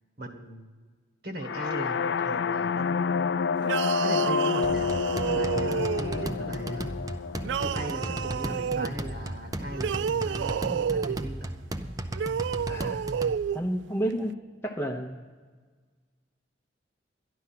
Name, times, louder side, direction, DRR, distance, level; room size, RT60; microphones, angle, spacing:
voice 1, 0.2-0.7 1.2-3.4 4.0-4.9 5.3-7.0 7.6-11.5, equal, 60° right, 5 dB, 1.6 m, -38 dB
sound 1, 1.4-9.3, left 6 dB, 70° left, 0.4 m, -29 dB
sound 2, 3.6-6.4 7.4-8.9 9.7-11.2 12.1-13.6, right 7 dB, 75° right, 0.3 m, -30 dB
sound 3, 4.6-13.4, right 1 dB, 20° right, 0.6 m, -35 dB
voice 2, 12.7-13.3 13.5-14.3 14.6-15.2, right 1 dB, 15° left, 0 dB, 0.8 m, -31 dB
13.0 x 11.0 x 5.8 m, 1.5 s
head